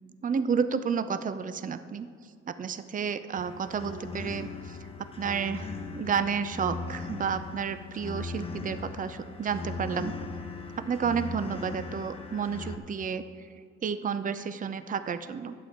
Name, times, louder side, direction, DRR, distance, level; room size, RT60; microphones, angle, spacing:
voice 1, 0.2-2.1 2.5-4.8 5.2-10.1 10.8-13.2 13.8-15.5, right 6 dB, 25° right, 12 dB, 0.5 m, -31 dB
sound 1, 3.4-12.8, left 3 dB, 20° left, 0.9 m, -39 dB
10.5 x 8.1 x 4.5 m, 2.2 s
cardioid pair, 90°, 30 cm